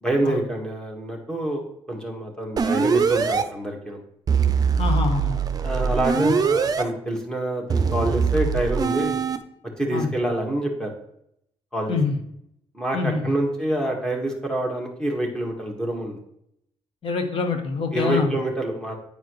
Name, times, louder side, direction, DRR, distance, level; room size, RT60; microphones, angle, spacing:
voice 1, 0.0-4.0 5.6-9.2 9.8-10.9 11.7-12.0 12.7-16.2 17.9-19.0, right 1 dB, 5° left, 1 dB, 1.8 m, -26 dB
sound 1, 2.6-3.4 4.3-6.8 7.7-9.4, right 5 dB, 35° right, 0.6 m, -22 dB
voice 2, 4.8-5.4 6.1-6.4 9.9-10.1 11.9-12.2 12.9-13.3 17.0-18.3, left 4 dB, 55° left, 5 dB, 1.4 m, -25 dB
8.9 x 4.8 x 3.1 m, 0.75 s
cardioid pair, 95°, 11 cm